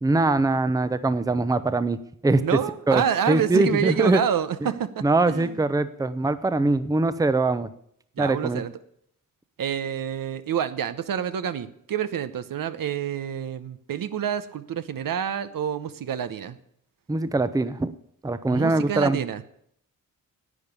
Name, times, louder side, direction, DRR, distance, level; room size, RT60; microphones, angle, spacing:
voice 1, 0.0-2.4 2.9-4.2 5.0-7.7 8.2-8.6 17.1-17.9 18.2-19.2, right 2 dB, 10° right, 13 dB, 0.6 m, -22 dB
voice 2, 2.4-5.6 8.2-8.7 9.6-16.6 18.5-19.4, right 9 dB, 75° right, 12 dB, 0.9 m, -28 dB
11.0 x 8.9 x 8.2 m, 0.70 s
wide cardioid pair, 115°, 34 cm